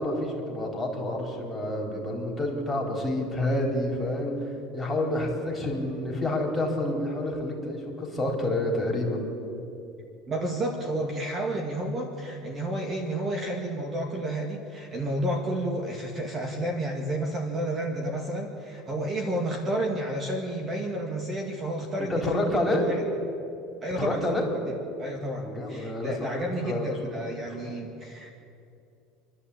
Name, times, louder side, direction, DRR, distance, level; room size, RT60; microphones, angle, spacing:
voice 1, 0.0-4.3 4.7-9.2 22.1-22.9 24.0-24.5 25.4-27.1, left 1 dB, 5° left, -1 dB, 3.9 m, -28 dB
voice 2, 10.3-23.0 23.8-24.3 25.0-28.3, right 1 dB, 25° right, 2 dB, 2.2 m, -31 dB
28.0 x 11.5 x 8.6 m, 2.6 s
supercardioid pair, 135°, 0 cm